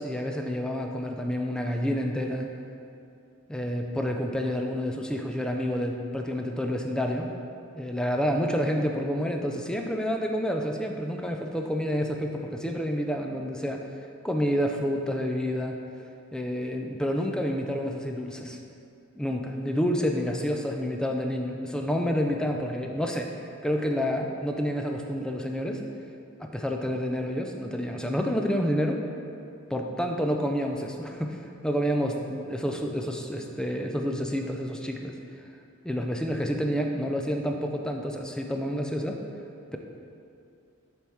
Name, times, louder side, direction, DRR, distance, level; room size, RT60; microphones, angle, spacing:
voice 1, 0.0-2.5 3.5-7.3 7.7-13.8 14.2-15.8 16.3-18.6 19.2-23.3 23.6-25.8 26.4-29.0 29.7-35.1 35.8-39.2, equal, 5° left, 2 dB, 0.3 m, -29 dB
7.1 x 3.5 x 4.4 m, 2.6 s
head